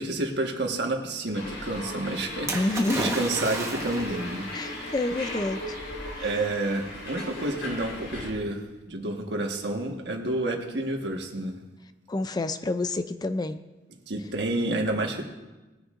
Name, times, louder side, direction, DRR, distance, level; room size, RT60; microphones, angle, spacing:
voice 1, 0.0-4.5 6.2-11.5 14.1-15.3, right 2 dB, 65° right, 2 dB, 1.5 m, -29 dB
sound 1, 1.3-8.3, left 1 dB, 85° left, 4.1 m, -37 dB
voice 2, 2.5-3.2 4.5-5.7 6.1-6.4 12.1-13.6, left 2 dB, 20° left, 10 dB, 0.4 m, -28 dB
Splash splatter, 2.5-4.3 5.2-5.3, right 2 dB, 15° right, 1.3 m, -32 dB
20.0 x 10.0 x 2.6 m, 1.1 s
head